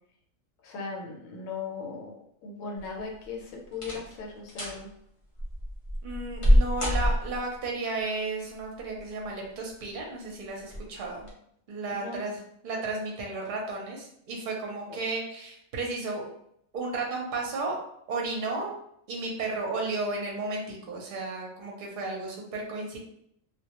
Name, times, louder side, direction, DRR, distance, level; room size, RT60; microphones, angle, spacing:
voice 1, 0.6-2.2 2.4-4.9 11.9-12.2 14.9-15.0, left 4 dB, 80° left, 0 dB, 1.0 m, -38 dB
sound 1, 2.8-3.2 3.7-4.2 4.5-4.8 5.4-7.6 8.8-9.4 9.8-9.9 10.6-10.9 11.2-11.3, equal, 55° left, 0.3 m, -25 dB
voice 2, 6.0-11.3 11.7-12.4 12.6-16.3 16.7-17.8 18.1-18.7 19.1-23.0, right 3 dB, 50° right, -1 dB, 0.6 m, -33 dB
2.2 x 2.1 x 2.8 m, 0.71 s
omnidirectional pair, 1.4 m